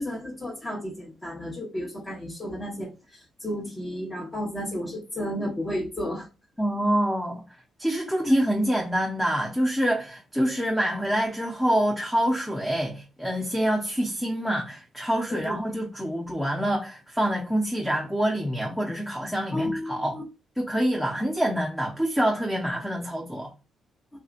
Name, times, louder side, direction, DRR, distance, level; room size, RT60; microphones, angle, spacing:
voice 1, 0.0-6.3 15.3-15.5 19.5-20.2, equal, 25° left, 1.1 m, -32 dB
voice 2, 6.6-7.4 7.8-20.1 20.6-23.5, equal, 5° left, 0.7 m, -26 dB
3.4 x 2.7 x 2.4 m
cardioid pair, 90°, 0 cm